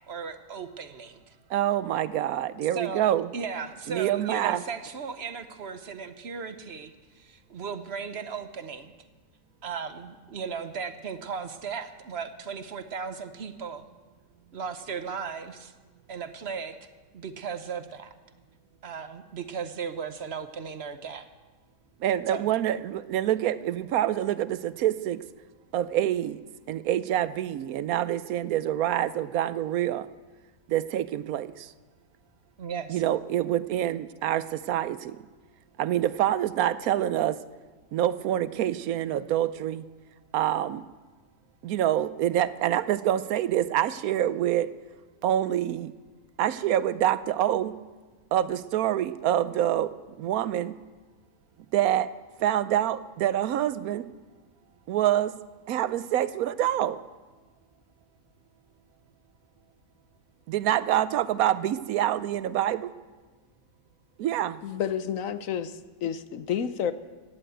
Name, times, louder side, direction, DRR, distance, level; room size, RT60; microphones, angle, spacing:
voice 1, 0.1-1.3 2.7-3.1 3.3-8.9 9.6-13.9 14.5-15.7 16.1-16.8 17.1-18.1 18.8-21.3 22.3-22.4 32.6-33.0, right 6 dB, 50° right, 10 dB, 1.1 m, -36 dB
voice 2, 1.5-3.3 3.9-4.6 22.0-25.2 25.7-30.1 30.7-31.7 32.9-35.2 35.8-37.4 37.9-39.8 40.3-40.8 41.6-44.7 45.2-45.9 46.4-47.7 48.3-50.7 51.7-52.1 52.4-54.1 54.9-55.4 55.7-57.0 60.5-62.9 64.2-64.6, right 11 dB, 90° right, 15 dB, 1.1 m, -26 dB
voice 3, 64.6-65.7 66.0-66.9, left 8 dB, 70° left, 12 dB, 1.1 m, -29 dB
16.5 x 11.0 x 7.9 m, 1.3 s
omnidirectional pair, 1.5 m